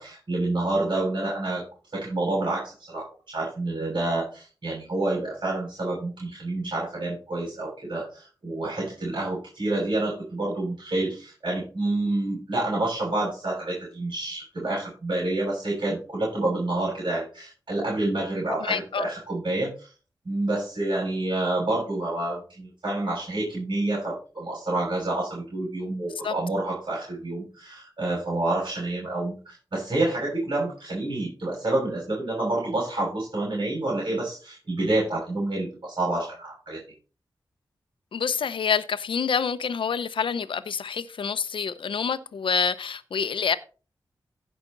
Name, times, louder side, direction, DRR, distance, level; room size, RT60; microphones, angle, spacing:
voice 1, 0.0-1.6 1.9-19.9 20.2-36.8, right 2 dB, 60° right, 6.4 m, -28 dB
voice 2, 18.5-19.1 26.2-26.3 38.1-43.6, left 6 dB, 90° left, 0.7 m, -27 dB
16.0 x 5.9 x 3.9 m
wide cardioid pair, 75°, 9 cm